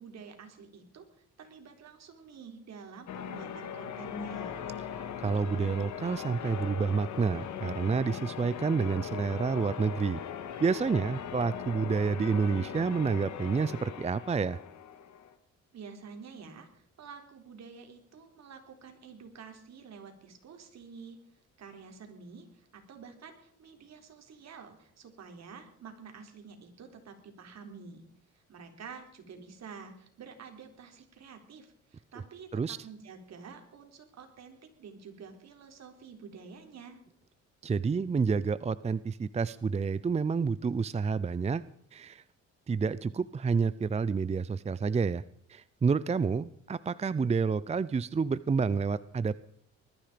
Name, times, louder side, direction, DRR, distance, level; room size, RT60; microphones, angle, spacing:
voice 1, 0.0-4.6 15.7-21.2 21.6-28.1 28.3-37.0, right 5 dB, 60° right, 4 dB, 3.9 m, -49 dB
Church bell, 3.1-15.3, left 8 dB, 70° left, 2.1 m, -40 dB
voice 2, 5.0-10.2 10.6-14.6 32.5-32.8 37.6-41.6 41.9-42.2 42.7-45.2 45.5-49.4, right 5 dB, 20° right, 17 dB, 0.5 m, -29 dB
20.5 x 13.5 x 5.1 m, 0.67 s
cardioid pair, 90°, 30 cm